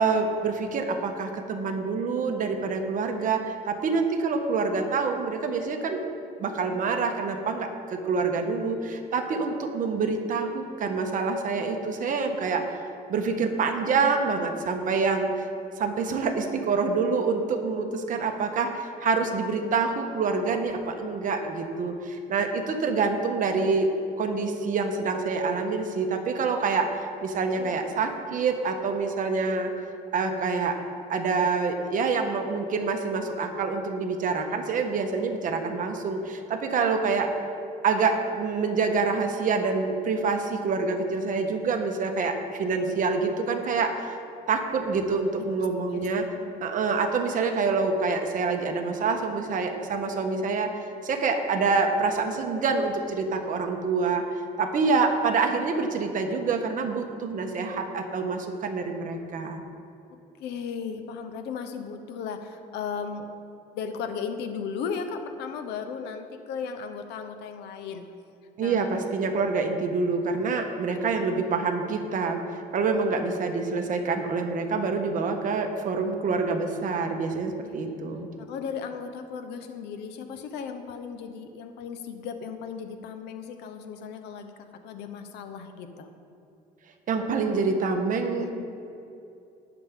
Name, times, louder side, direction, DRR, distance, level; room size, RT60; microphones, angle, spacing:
voice 1, 0.0-6.0 6.4-12.8 13.1-15.4 15.8-23.9 24.2-29.7 30.1-30.8 31.1-37.3 37.8-44.2 44.5-46.3 46.6-50.7 51.0-54.2 54.6-59.6 68.6-78.3 87.1-88.5, right 4 dB, 50° right, 4 dB, 1.3 m, -26 dB
voice 2, 27.5-27.8 45.4-45.5 45.9-46.6 60.4-63.3 63.7-68.0 68.6-68.8 77.6-78.0 78.4-84.5 84.8-86.1 87.7-87.8 88.4-88.6, left 6 dB, 85° left, 7 dB, 1.0 m, -36 dB
19.0 x 7.1 x 3.8 m, 2.7 s
cardioid pair, 110°, 17 cm